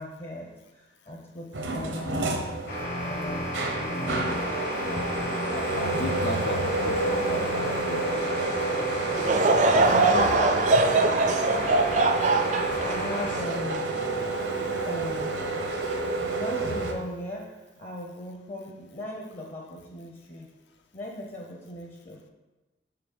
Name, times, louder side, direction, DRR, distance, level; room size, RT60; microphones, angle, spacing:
voice 1, 0.0-2.5 3.0-4.3 9.8-10.6 12.2-12.3 12.8-13.9 14.9-15.3 16.3-17.5 17.8-20.5 20.9-22.3, equal, 40° left, -1 dB, 0.7 m, -37 dB
sound 1, 1.5-16.9, right 2 dB, 85° right, 0.9 m, -30 dB
sound 2, 2.7-13.4, equal, 55° left, 1.5 m, -33 dB
voice 2, 5.5-8.0 9.7-10.3 10.9-11.1, left 1 dB, 75° left, 6 dB, 0.6 m, -33 dB
Laughter / Crowd, 9.2-14.6 15.2-15.3 16.1-16.3, right 3 dB, 40° right, 0.4 m, -23 dB
5.8 x 3.8 x 5.4 m, 1.1 s
head